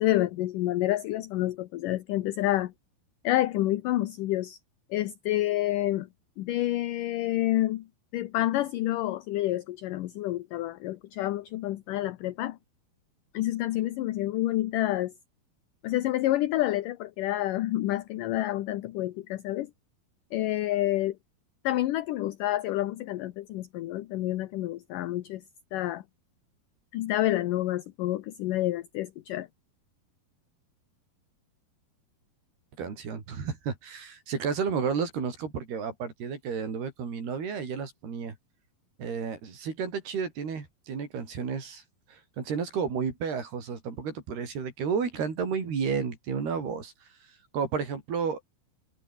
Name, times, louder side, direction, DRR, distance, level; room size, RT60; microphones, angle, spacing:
voice 1, 0.0-2.7 3.2-4.6 4.9-6.1 6.4-7.9 8.1-12.6 13.3-15.1 15.8-19.7 20.3-21.2 21.6-25.4 25.7-26.0 26.9-29.5, left 15 dB, 70° left, 2.2 m, -28 dB
voice 2, 32.8-38.4 39.0-41.8 42.1-46.9 47.5-48.5, right 6 dB, 75° right, 7.1 m, -32 dB
omnidirectional pair, 4.6 m